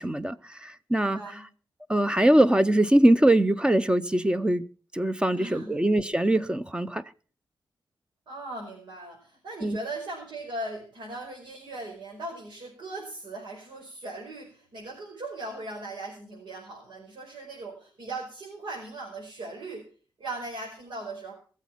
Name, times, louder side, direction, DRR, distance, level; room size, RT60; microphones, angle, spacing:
voice 1, 0.0-1.4 1.9-4.7 4.9-7.0 9.6-9.8, right 1 dB, 10° right, 0.7 m, -22 dB
voice 2, 0.9-1.4 5.3-5.8 8.3-19.8 20.2-21.3, right 2 dB, 80° right, 5.2 m, -39 dB
21.5 x 7.4 x 5.9 m
cardioid pair, 85°, 8 cm